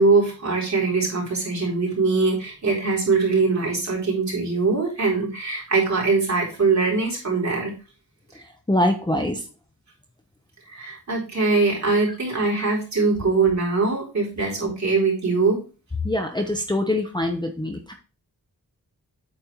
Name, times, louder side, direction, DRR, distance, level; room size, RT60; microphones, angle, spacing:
voice 1, 0.0-7.7 10.6-15.6, right 4 dB, 45° right, -3 dB, 4.0 m, -22 dB
voice 2, 8.7-9.4 16.0-17.9, left 1 dB, 10° left, 3 dB, 0.8 m, -24 dB
8.8 x 4.2 x 4.5 m, 0.33 s
wide cardioid pair, 150°, 37 cm